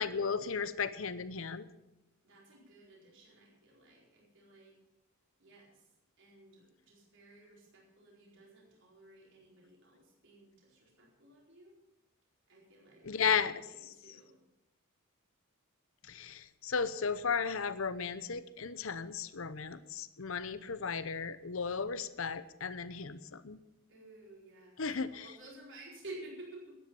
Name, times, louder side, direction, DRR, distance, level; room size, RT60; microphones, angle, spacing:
voice 1, 0.0-1.6 13.0-13.6 16.1-23.6 24.8-25.2, left 6 dB, 65° left, 14 dB, 0.8 m, -35 dB
voice 2, 2.2-4.8 5.4-5.8 6.2-11.8 12.5-14.4 23.9-24.8 25.1-26.8, right 2 dB, 60° right, -3 dB, 4.6 m, -53 dB
13.5 x 10.5 x 7.1 m, 0.96 s
head